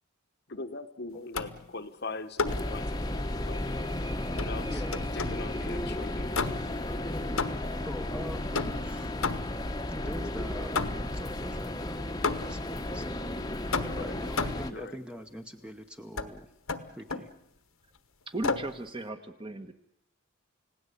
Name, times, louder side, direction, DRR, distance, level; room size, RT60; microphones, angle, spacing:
voice 1, 0.5-3.9 4.3-4.8 5.1-6.5 13.8-14.1 14.7-15.0, left 3 dB, 45° left, 9 dB, 1.1 m, -41 dB
sound 1, 1.3-1.7 2.4-2.7 4.4-5.5 6.3-6.8 7.4-7.8 8.5-9.7 10.7-11.2 12.2-12.7 13.7-14.7 16.2-16.3 16.7-17.3 18.4-18.8, left 4 dB, 70° left, 1.3 m, -32 dB
sound 2, 2.4-14.7, left 1 dB, 20° left, 1.0 m, -34 dB
voice 2, 4.7-5.0 7.5-9.3 9.9-13.2 14.0-16.5 16.9-17.3, equal, 5° right, 6 dB, 0.9 m, -44 dB
voice 3, 18.3-19.7, right 1 dB, 25° right, 8 dB, 1.3 m, -36 dB
30.0 x 17.5 x 8.4 m, 0.81 s
head